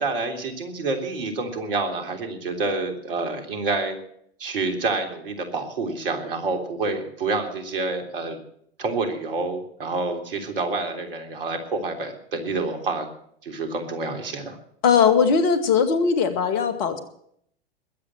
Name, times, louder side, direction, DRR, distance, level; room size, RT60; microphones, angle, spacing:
voice 1, 0.0-4.0 4.4-8.4 8.8-13.1 13.4-14.6, right 3 dB, 60° right, 5 dB, 3.5 m, -28 dB
voice 2, 14.8-17.0, left 6 dB, 45° left, 11 dB, 2.1 m, -19 dB
21.0 x 8.6 x 7.8 m, 0.68 s
figure-of-eight pair, 95°, 31 cm